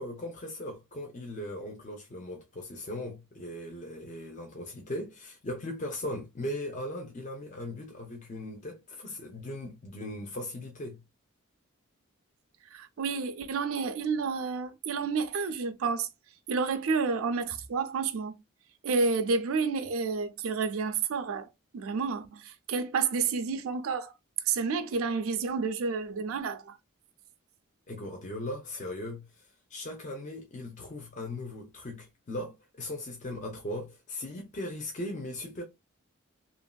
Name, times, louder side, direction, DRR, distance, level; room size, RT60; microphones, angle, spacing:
voice 1, 0.0-11.0 27.9-35.6, left 1 dB, 35° left, 0.5 m, -38 dB
voice 2, 12.7-16.1 16.5-18.3 18.8-24.1 24.4-26.8, right 5 dB, 80° right, 0.4 m, -30 dB
2.9 x 2.6 x 2.2 m
head